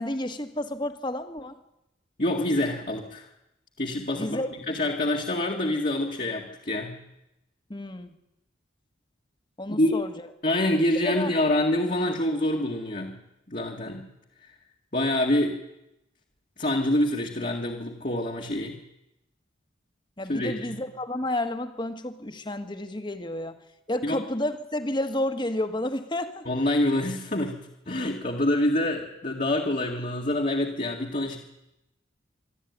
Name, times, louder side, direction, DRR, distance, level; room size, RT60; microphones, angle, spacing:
voice 1, 0.0-1.5 4.1-4.5 7.7-8.1 9.6-10.1 11.0-11.3 20.2-23.6 23.9-26.5, left 1 dB, 25° left, 8 dB, 1.6 m, -31 dB
voice 2, 2.2-3.3 3.8-7.0 9.7-10.0 10.4-13.2 13.5-14.1 14.9-15.6 16.6-18.8 20.3-20.8 24.0-24.2 26.5-27.6 27.9-31.4, left 1 dB, 40° left, -1 dB, 2.0 m, -26 dB
26.0 x 12.5 x 9.5 m, 0.90 s
head